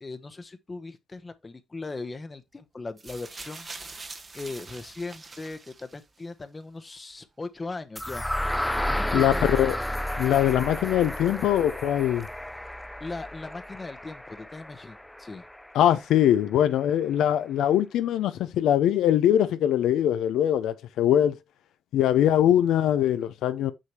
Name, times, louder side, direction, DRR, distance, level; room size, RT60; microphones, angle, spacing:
voice 1, 0.0-4.1 4.3-8.2 8.9-9.5 13.0-15.4 22.1-22.2, left 3 dB, 25° left, 0.9 m, -39 dB
sound 1, 3.0-6.2 7.1-7.2, right 3 dB, 30° right, 0.9 m, -43 dB
sound 2, 8.0-15.9, left 1 dB, 5° left, 0.4 m, -32 dB
voice 2, 9.1-9.8 10.1-12.3 15.7-21.4 21.9-23.7, left 11 dB, 80° left, 0.6 m, -22 dB
6.4 x 5.7 x 2.9 m
cardioid pair, 90°, 0 cm